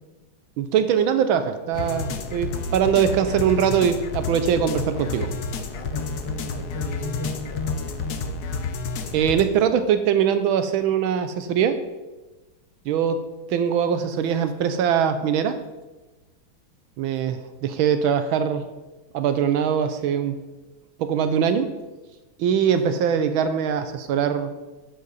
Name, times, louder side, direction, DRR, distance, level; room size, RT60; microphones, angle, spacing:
voice 1, 0.6-5.3 9.1-11.8 12.8-13.2 13.5-15.6 17.0-18.7 19.1-20.4 21.0-21.8 22.4-24.5, right 8 dB, 75° right, 10 dB, 1.4 m, -22 dB
sound 1, 1.7-9.4, left 4 dB, 60° left, 1.1 m, -30 dB
voice 2, 5.7-8.2 22.5-22.6 22.9-23.0, left 3 dB, 20° left, 1 dB, 1.1 m, -34 dB
10.5 x 7.8 x 4.0 m, 1.1 s
omnidirectional pair, 2.3 m